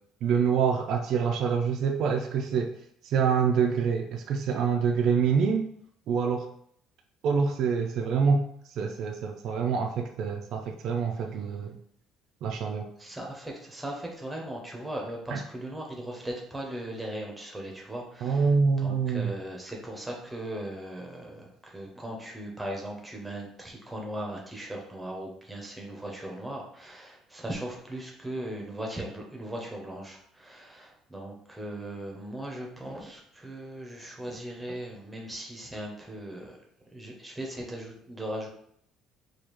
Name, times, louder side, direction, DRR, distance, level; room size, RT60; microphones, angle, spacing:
voice 1, 0.2-2.8 3.0-5.7 6.1-6.5 7.2-11.8 12.4-12.9 15.3-15.4 18.2-19.3, right 6 dB, 50° right, 2 dB, 0.3 m, -26 dB
voice 2, 13.0-18.5 18.8-36.6 36.9-38.5, right 1 dB, 5° right, -1 dB, 0.6 m, -38 dB
4.8 x 2.3 x 3.0 m, 0.67 s
cardioid pair, 180°, 0 cm